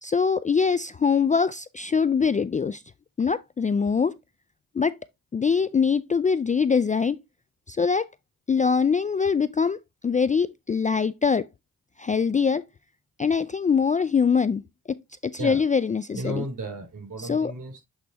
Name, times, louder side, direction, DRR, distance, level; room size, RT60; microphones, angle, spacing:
voice 1, 0.0-2.8 3.2-4.2 4.8-5.0 5.3-7.2 7.7-8.1 8.5-9.8 10.0-11.5 12.0-12.6 13.2-14.6 14.9-15.0 15.2-16.4 17.2-17.5, left 5 dB, 20° left, 0.3 m, -23 dB
voice 2, 16.1-17.8, right 2 dB, 60° right, 4.8 m, -34 dB
7.9 x 4.0 x 3.3 m
cardioid pair, 55°, 36 cm